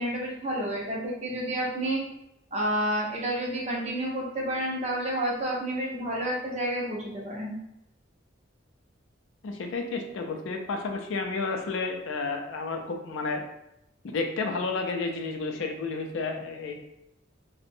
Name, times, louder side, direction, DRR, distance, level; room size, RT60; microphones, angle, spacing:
voice 1, 0.0-2.0 2.5-7.6, right 1 dB, 35° right, -3 dB, 0.5 m, -30 dB
voice 2, 9.4-13.4 14.0-16.9, left 3 dB, 75° left, 4 dB, 0.4 m, -31 dB
2.6 x 2.0 x 2.5 m, 0.84 s
head